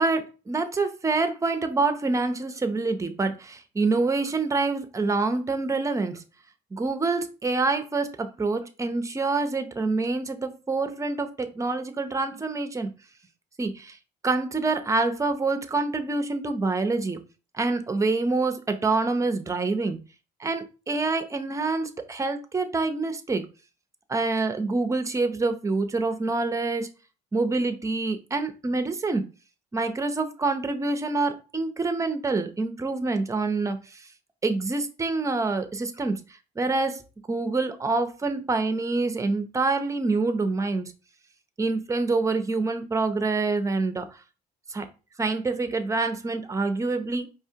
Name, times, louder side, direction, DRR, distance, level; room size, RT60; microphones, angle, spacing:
voice 1, 0.0-6.2 6.7-12.9 13.6-14.0 14.2-17.2 17.6-20.0 20.4-23.4 24.1-26.9 27.3-29.3 29.7-33.8 34.4-36.2 36.6-37.0 37.3-40.9 41.6-44.1 44.7-44.8 45.2-47.3, right 3 dB, 20° right, 8 dB, 0.6 m, -26 dB
4.7 x 3.3 x 2.8 m, 0.32 s
cardioid pair, 110°, 17 cm